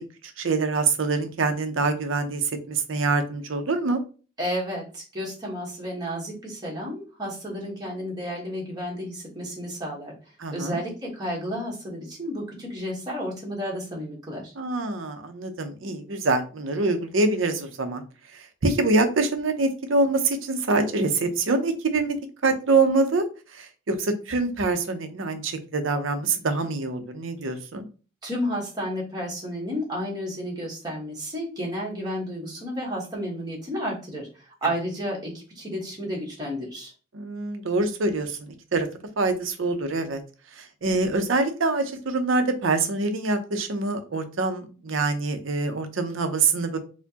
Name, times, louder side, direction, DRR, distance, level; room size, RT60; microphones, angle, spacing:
voice 1, 0.4-4.0 10.4-10.8 14.6-18.0 18.3-22.2 22.4-23.2 23.5-27.9 37.1-38.9 39.2-40.2 40.5-46.8, right 3 dB, 80° right, 7 dB, 0.7 m, -25 dB
voice 2, 4.4-10.1 10.5-14.5 28.2-36.9, equal, 20° right, -4 dB, 1.3 m, -32 dB
4.3 x 2.2 x 2.8 m, 0.35 s
head